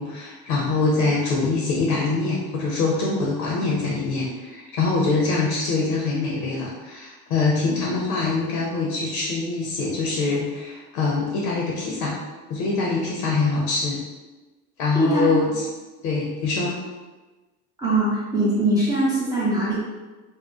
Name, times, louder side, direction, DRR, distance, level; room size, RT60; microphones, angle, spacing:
voice 1, 0.0-12.2 12.5-14.0 14.8-15.7 16.0-16.8, left 3 dB, 50° left, -2 dB, 0.6 m, -24 dB
voice 2, 14.9-15.3 17.8-19.8, right 1 dB, 10° right, -8 dB, 0.3 m, -21 dB
2.7 x 2.1 x 2.2 m, 1.2 s
figure-of-eight pair, 60°, 47 cm